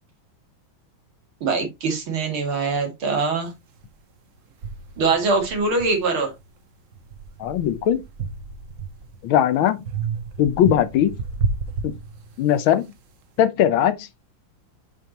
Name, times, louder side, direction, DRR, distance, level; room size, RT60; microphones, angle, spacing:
voice 1, 1.4-3.5 5.0-6.3, right 4 dB, 85° right, 3.1 m, -23 dB
sound 1, 3.8-3.9 4.6-6.5 6.9-9.3 9.9-12.6, right 5 dB, 55° right, 0.9 m, -31 dB
voice 2, 7.4-8.0 9.2-9.8 10.4-11.1 11.8-11.9 12.4-12.9 13.4-14.1, left 10 dB, 80° left, 1.6 m, -19 dB
7.0 x 5.5 x 2.9 m
omnidirectional pair, 2.2 m